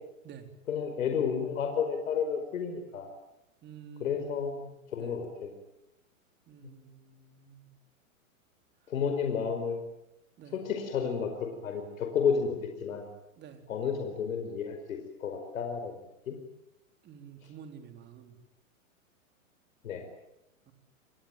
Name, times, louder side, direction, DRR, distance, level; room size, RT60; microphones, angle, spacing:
voice 1, 0.7-3.1 4.0-4.6 4.9-5.5 8.9-9.8 10.5-13.1 13.7-15.9 16.3-16.4 19.8-20.0, left 6 dB, 70° left, 5 dB, 5.1 m, -31 dB
voice 2, 3.6-5.2 6.5-7.7 10.4-10.6 13.4-13.6 17.0-18.4 20.7-20.8, right 7 dB, 25° right, 7 dB, 4.0 m, -49 dB
28.0 x 21.5 x 9.2 m, 0.88 s
hypercardioid pair, 130°, 42 cm